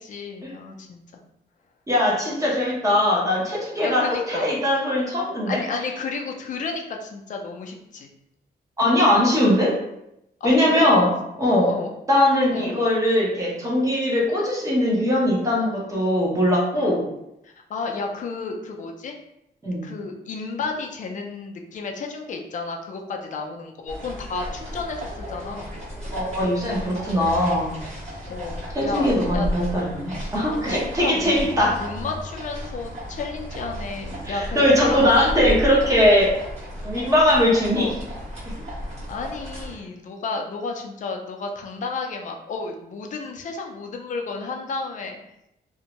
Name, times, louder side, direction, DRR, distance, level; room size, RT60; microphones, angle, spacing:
voice 1, 0.0-1.0 3.8-4.4 5.5-8.1 10.4-10.9 11.7-11.9 12.5-12.8 17.4-19.1 19.8-25.7 28.3-29.5 30.4-35.4 37.8-38.0 39.1-45.2, left 4 dB, 45° left, 2 dB, 0.4 m, -32 dB
voice 2, 1.9-5.6 8.8-9.7 10.4-11.1 11.4-11.7 12.1-17.0 19.6-19.8 26.1-27.8 28.7-31.8 34.2-36.3 36.8-37.9, left 1 dB, 20° right, -5 dB, 0.7 m, -20 dB
sound 1, 23.9-39.7, equal, 40° right, 1.2 m, -34 dB
2.6 x 2.1 x 2.8 m, 0.82 s
wide cardioid pair, 165°, 18 cm